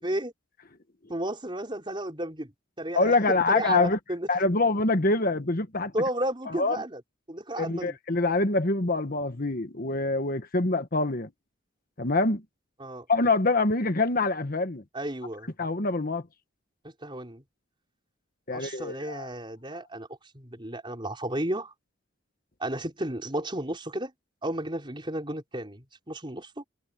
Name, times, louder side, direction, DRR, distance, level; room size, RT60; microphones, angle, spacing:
voice 1, 1.1-2.5 2.8-4.3 5.9-7.0 7.3-7.9 12.8-13.1 14.9-15.5 17.0-17.4 18.5-20.1 20.3-21.7 22.6-24.1 24.4-26.6, right 1 dB, 25° right, 4.7 m, -33 dB
voice 2, 2.9-4.0 4.3-5.9 6.5-6.8 7.6-11.3 12.0-12.4 13.1-14.8 15.6-16.2 18.5-19.3, left 3 dB, 45° left, 1.4 m, -25 dB
head